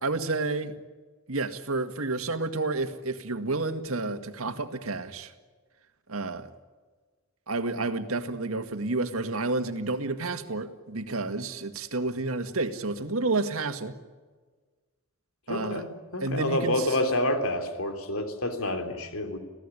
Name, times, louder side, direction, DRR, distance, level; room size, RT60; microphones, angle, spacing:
voice 1, 0.0-0.7 1.3-5.3 6.1-6.5 7.5-13.9 15.5-15.8 16.2-17.0, right 3 dB, 85° right, 8 dB, 1.9 m, -30 dB
voice 2, 15.5-15.9 16.1-19.4, left 1 dB, 85° left, 6 dB, 3.4 m, -28 dB
27.0 x 17.0 x 9.9 m, 1.4 s
head